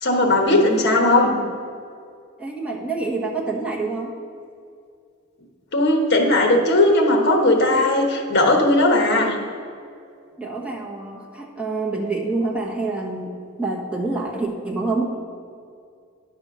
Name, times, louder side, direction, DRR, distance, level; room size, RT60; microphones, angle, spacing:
voice 1, 0.0-1.4 5.7-9.4, left 1 dB, 55° left, 2 dB, 1.2 m, -17 dB
voice 2, 2.4-4.1 10.4-15.0, right 3 dB, 5° right, -2 dB, 1.1 m, -27 dB
10.5 x 4.2 x 6.1 m, 2.3 s
head